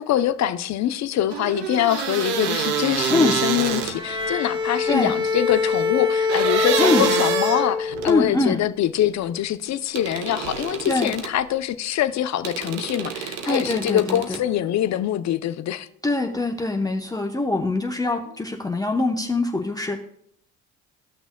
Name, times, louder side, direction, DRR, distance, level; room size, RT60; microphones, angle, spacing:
voice 1, 0.0-15.9, left 11 dB, 50° left, 0.6 m, -24 dB
sound 1, 1.3-4.3 6.3-8.2 10.0-11.4 12.4-14.4, right 7 dB, 80° right, 0.8 m, -27 dB
Bowed string instrument, 3.9-8.3, left 5 dB, 15° right, 1.4 m, -24 dB
voice 2, 8.0-8.6 10.9-11.1 13.4-14.2 16.0-20.0, left 2 dB, 10° left, 0.8 m, -23 dB
15.5 x 6.0 x 2.2 m
hypercardioid pair, 65°, 34 cm